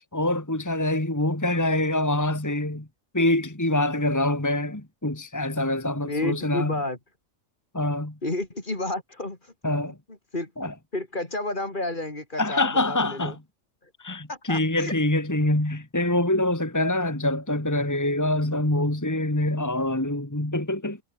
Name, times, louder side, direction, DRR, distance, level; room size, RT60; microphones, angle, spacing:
voice 1, 0.0-2.9 3.1-6.8 7.7-8.2 9.6-10.0 10.6-10.7 12.4-13.4 14.0-21.0, left 1 dB, 15° left, 2.3 m, -25 dB
voice 2, 6.1-7.0 8.2-9.5 10.3-10.5 10.9-13.4 13.8-13.9 14.3-14.9, left 2 dB, 40° left, 3.4 m, -31 dB
omnidirectional pair, 1.4 m